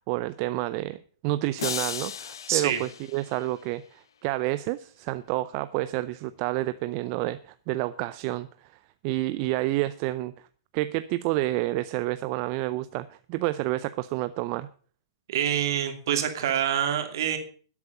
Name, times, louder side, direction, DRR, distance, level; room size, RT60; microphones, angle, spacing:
voice 1, 0.0-10.5 10.7-14.7, right 17 dB, 40° right, 14 dB, 0.5 m, -29 dB
sound 1, 1.6-3.9, left 8 dB, 80° left, 0.6 m, -36 dB
voice 2, 2.5-2.8 15.3-17.4, right 9 dB, 65° right, 6 dB, 2.7 m, -26 dB
12.0 x 8.3 x 6.6 m, 0.43 s
hypercardioid pair, 130°, 2 cm